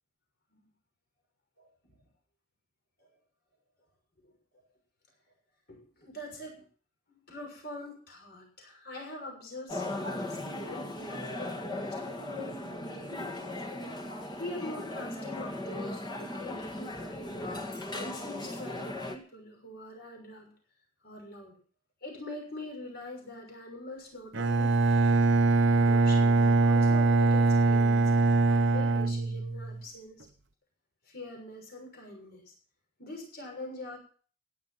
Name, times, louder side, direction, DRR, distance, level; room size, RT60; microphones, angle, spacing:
voice 1, 5.7-6.6 7.1-13.5 14.3-20.5 21.0-21.5 22.0-30.3 31.0-32.5 33.0-34.0, left 1 dB, 50° left, 1 dB, 6.5 m, -44 dB
sound 1, 9.7-19.2, left 1 dB, 20° left, 1.9 m, -37 dB
Bowed string instrument, 24.3-29.8, right 3 dB, 65° right, 0.9 m, -23 dB
16.5 x 11.0 x 5.8 m, 0.43 s
head